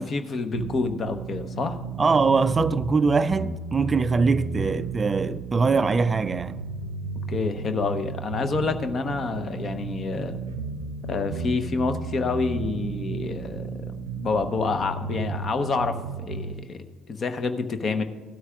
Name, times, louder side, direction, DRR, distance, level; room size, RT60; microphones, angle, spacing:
voice 1, 0.0-1.8 7.3-10.4 11.1-13.7 14.2-16.8 17.1-18.0, left 4 dB, 40° left, 0.9 m, -28 dB
sound 1, 0.5-16.5, right 4 dB, 75° right, 0.5 m, -34 dB
voice 2, 2.0-6.6, right 4 dB, 30° right, 0.3 m, -22 dB
17.0 x 12.5 x 2.4 m
figure-of-eight pair, 50°, 0 cm